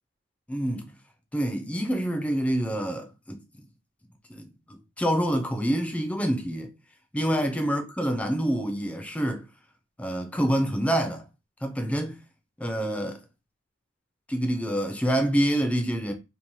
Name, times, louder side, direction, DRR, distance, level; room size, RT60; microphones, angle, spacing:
voice 1, 0.5-0.9 1.3-3.4 4.3-6.7 7.1-9.4 10.0-11.2 11.6-12.2 12.6-13.2 14.3-16.1, equal, 5° left, 0.3 m, -27 dB
2.7 x 2.1 x 2.9 m
head